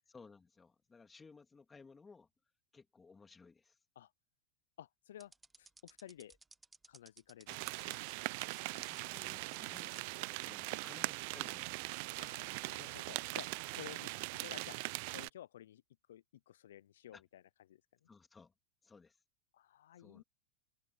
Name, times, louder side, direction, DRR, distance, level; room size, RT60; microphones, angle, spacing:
voice 1, 0.1-2.3 2.7-3.8 7.8-8.3 8.7-12.1 17.1-17.2 18.1-18.5 18.8-19.2 20.0-20.2, left 4 dB, 15° left, 3.0 m, -59 dB
voice 2, 4.8-6.4 6.9-7.6 12.2-15.8 16.1-18.1 19.5-20.2, left 11 dB, 85° left, 0.4 m, -54 dB
sound 1, 5.2-9.0 9.3-10.0 10.4-10.5 11.2-11.4, right 3 dB, 10° right, 0.7 m, -59 dB
sound 2, 7.5-15.3, right 25 dB, 60° right, 0.5 m, -41 dB
supercardioid pair, 115°, 0 cm